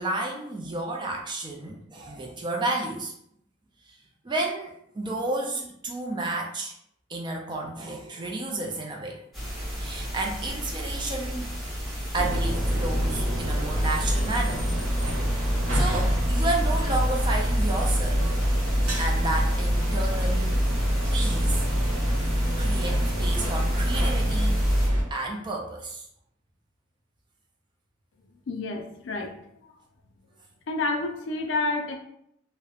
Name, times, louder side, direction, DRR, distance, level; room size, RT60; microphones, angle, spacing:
voice 1, 0.0-3.1 4.2-6.7 7.1-9.2 9.8-11.5 12.1-14.7 15.3-18.3 19.0-20.5 21.1-21.6 22.6-24.6 25.1-26.0, right 2 dB, 25° right, 0 dB, 0.3 m, -31 dB
sound 1, 9.3-24.9, equal, ahead, 0.8 m, -34 dB
sound 2, 12.1-25.0, equal, 65° right, 1.0 m, -25 dB
voice 2, 28.5-29.6 30.7-31.9, left 3 dB, 65° left, 3 dB, 0.4 m, -29 dB
2.8 x 2.0 x 2.3 m, 0.72 s
head